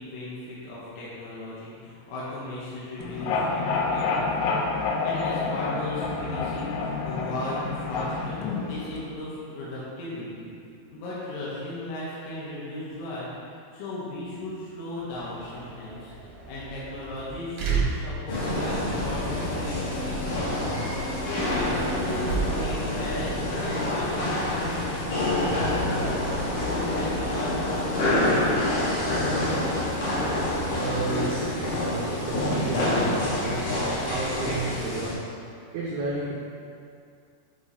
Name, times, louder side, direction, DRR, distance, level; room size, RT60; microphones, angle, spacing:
voice 1, 0.0-10.5 10.9-13.3 13.7-16.1 16.5-20.7 21.2-29.2, left 1 dB, 70° left, -8 dB, 3.8 m, -36 dB
sound 1, 3.0-9.1, left 4 dB, 90° left, 3.6 m, -28 dB
sound 2, 14.9-30.3, right 5 dB, 70° right, 1.8 m, -37 dB
sound 3, 18.3-35.1, left 1 dB, 55° left, 2.7 m, -27 dB
voice 2, 20.7-21.1 30.8-33.7 34.1-35.3 35.7-36.3, right 3 dB, 90° right, -5 dB, 2.3 m, -32 dB
11.0 x 4.8 x 4.2 m, 2.4 s
omnidirectional pair, 6.0 m